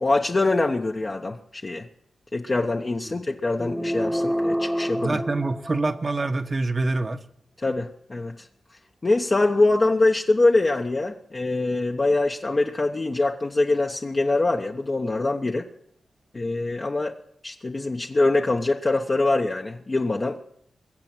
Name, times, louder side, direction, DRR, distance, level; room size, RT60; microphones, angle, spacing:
voice 1, 0.0-1.9 2.3-5.2 7.6-8.5 9.0-15.7 16.3-17.2 17.4-20.4, left 2 dB, 40° left, 2 dB, 0.9 m, -23 dB
sound 1, 3.6-6.2, equal, 5° left, 1.1 m, -27 dB
voice 2, 4.9-7.2, right 3 dB, 40° right, 10 dB, 1.0 m, -26 dB
22.0 x 7.7 x 6.1 m, 0.71 s
cardioid pair, 50°, 0 cm